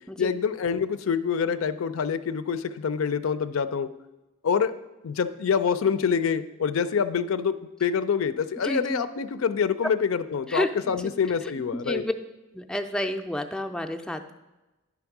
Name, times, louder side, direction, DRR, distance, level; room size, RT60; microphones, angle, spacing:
voice 1, 0.2-3.9 4.4-4.7 5.0-7.5 7.8-12.0, left 6 dB, 85° left, 12 dB, 0.4 m, -26 dB
voice 2, 8.6-9.0 10.5-10.7 11.9-12.1 12.5-14.3, left 1 dB, 5° left, 5 dB, 0.4 m, -29 dB
10.0 x 3.5 x 5.9 m, 1.1 s
head